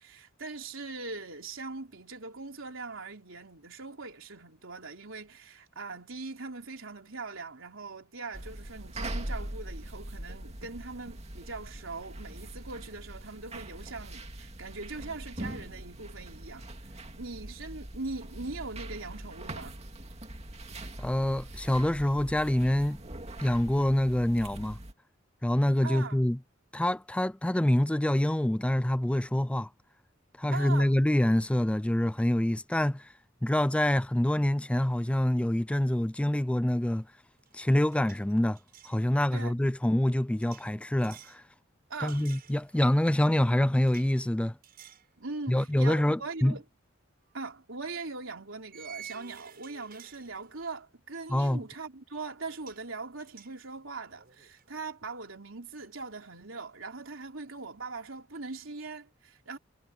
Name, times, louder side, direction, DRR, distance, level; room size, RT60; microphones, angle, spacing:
voice 1, 0.0-16.6 17.0-19.8 25.8-26.3 30.5-31.0 39.3-39.6 41.9-42.3 45.2-46.6 47.3-59.6, right 3 dB, 80° right, 3.7 m, -41 dB
sound 1, 8.3-24.9, right 1 dB, 35° right, 2.3 m, -42 dB
voice 2, 21.0-23.0 23.4-24.8 25.4-26.4 26.7-29.7 30.4-33.1 33.4-37.1 37.5-38.6 38.8-41.4 42.0-44.5 45.5-46.5 51.3-51.6, left 1 dB, 5° left, 0.4 m, -26 dB
sound 2, 36.9-37.1 37.4-39.0 40.4-41.4 42.1-43.0 43.8-44.2 44.6-45.1 45.5-45.7 47.2-47.4 48.7-50.8 52.1-52.2 52.5-52.9 53.2-54.7, right 8 dB, 50° right, 7.0 m, -52 dB
head